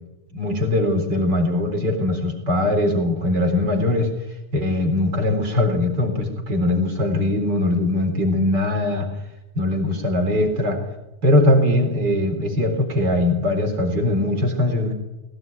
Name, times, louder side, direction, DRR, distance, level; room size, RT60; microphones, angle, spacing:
voice 1, 0.3-4.1 4.5-9.1 9.5-10.8 11.2-14.9, left 1 dB, 35° right, 5 dB, 4.3 m, -21 dB
21.0 x 17.5 x 9.5 m, 0.95 s
omnidirectional pair, 3.5 m